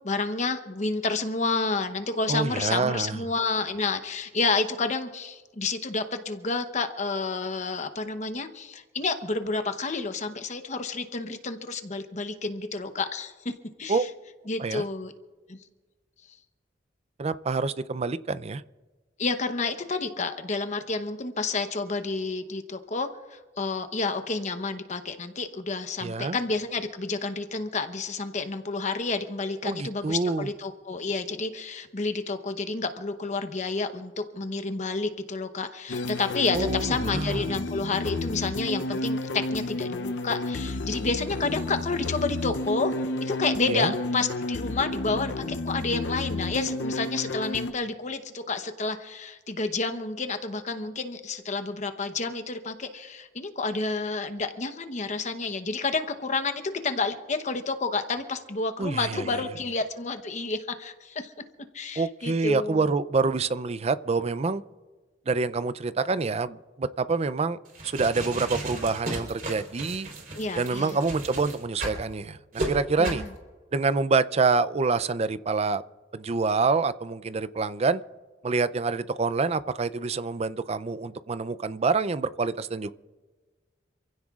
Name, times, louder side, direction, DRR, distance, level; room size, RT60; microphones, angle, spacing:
voice 1, 0.0-13.5 13.8-14.1 14.5-15.1 15.5-15.6 19.2-42.9 43.2-61.3 61.7-62.9 70.4-71.0 73.0-73.3, left 3 dB, 40° left, 0.9 m, -30 dB
voice 2, 2.3-3.2 13.9-14.1 14.6-14.8 17.2-18.6 26.0-26.4 29.6-30.5 36.5-37.5 43.7-43.9 58.8-59.3 62.0-64.6 65.3-67.6 67.9-70.1 70.6-72.4 72.7-73.2 73.7-75.8 76.1-78.0 78.4-82.9, right 4 dB, 35° right, 0.4 m, -26 dB
sound 1, 35.9-47.7, left 2 dB, 80° left, 0.7 m, -31 dB
sound 2, 67.7-72.0 72.5-72.7 73.0-73.3, right 1 dB, 50° right, 3.9 m, -34 dB
27.5 x 16.0 x 2.4 m
head